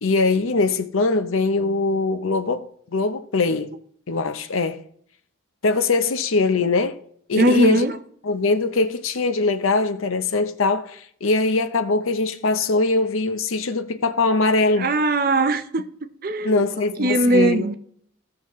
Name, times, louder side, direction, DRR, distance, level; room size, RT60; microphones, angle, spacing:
voice 1, 0.0-3.7 4.1-4.8 5.6-7.0 7.3-7.8 8.2-14.9 16.4-17.6, left 3 dB, 85° left, 0.7 m, -22 dB
voice 2, 7.4-8.0 14.7-15.9 16.2-16.6 17.0-17.7, right 2 dB, 45° right, 0.7 m, -20 dB
17.0 x 6.0 x 3.1 m
head